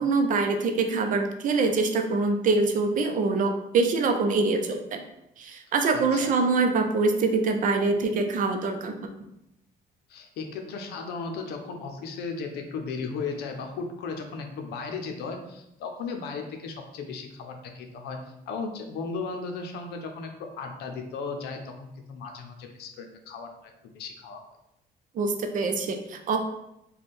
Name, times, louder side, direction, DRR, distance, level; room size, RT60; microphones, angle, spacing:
voice 1, 0.0-5.0 5.4-9.1 25.1-26.4, right 3 dB, 50° right, 5 dB, 0.5 m, -24 dB
voice 2, 5.9-6.3 10.1-18.2 18.5-23.5 23.9-24.6, left 4 dB, 75° left, 4 dB, 0.6 m, -36 dB
3.3 x 2.3 x 4.2 m, 0.84 s
cardioid pair, 110°, 17 cm